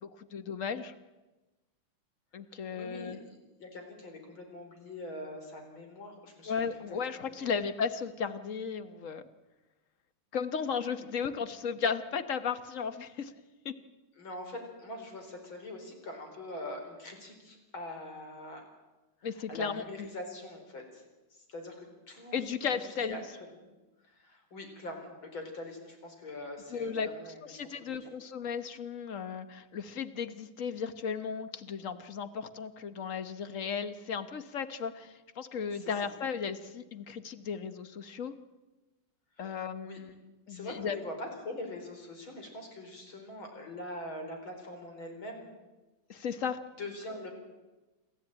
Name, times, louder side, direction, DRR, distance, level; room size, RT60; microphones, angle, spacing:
voice 1, 0.0-0.9 2.3-3.2 6.5-9.2 10.3-13.3 13.6-13.7 19.2-20.1 22.3-23.2 26.7-27.1 27.4-38.3 39.4-40.1 40.5-41.0 46.1-46.6, left 6 dB, 45° left, 11 dB, 1.2 m, -35 dB
voice 2, 2.8-7.5 14.2-18.6 19.2-21.0 21.5-23.7 24.0-28.1 35.7-36.1 39.4-39.5 39.8-40.0 40.5-45.5 46.8-47.3, left 1 dB, 65° left, 4 dB, 5.1 m, -43 dB
27.0 x 14.0 x 8.9 m, 1.1 s
omnidirectional pair, 2.4 m